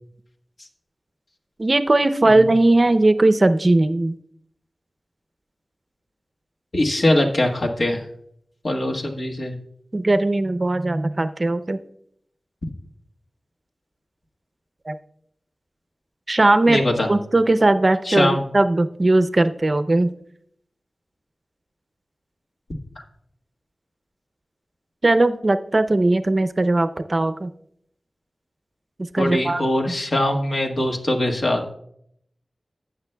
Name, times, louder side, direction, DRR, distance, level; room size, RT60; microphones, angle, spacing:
voice 1, 1.6-4.2 9.9-11.8 14.9-15.0 16.3-16.8 17.1-20.1 25.0-27.5 29.1-29.6, right 2 dB, 40° right, 10 dB, 0.6 m, -18 dB
voice 2, 6.7-8.0 8.6-9.6 16.7-17.1 18.0-18.5 29.2-31.6, left 1 dB, 65° left, 2 dB, 1.5 m, -22 dB
14.5 x 9.1 x 2.3 m, 0.71 s
wide cardioid pair, 80°, 0 cm